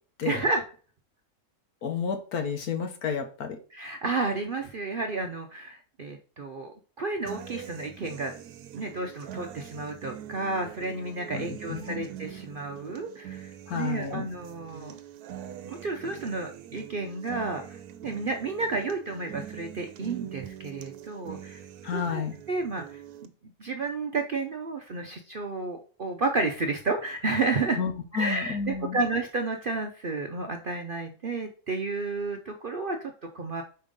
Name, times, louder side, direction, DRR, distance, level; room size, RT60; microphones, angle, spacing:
voice 1, 0.2-0.6 3.7-8.3 8.7-15.0 15.6-21.6 21.9-23.3 23.6-27.8 28.1-33.6, right 3 dB, 50° right, 4 dB, 0.6 m, -31 dB
voice 2, 1.8-3.6 11.3-12.1 13.7-14.3 21.8-22.4 27.8-29.0, left 6 dB, 75° left, 6 dB, 1.5 m, -31 dB
sound 1, 7.3-23.3, right 11 dB, 80° right, 1.2 m, -43 dB
5.1 x 4.4 x 5.3 m, 0.39 s
omnidirectional pair, 1.6 m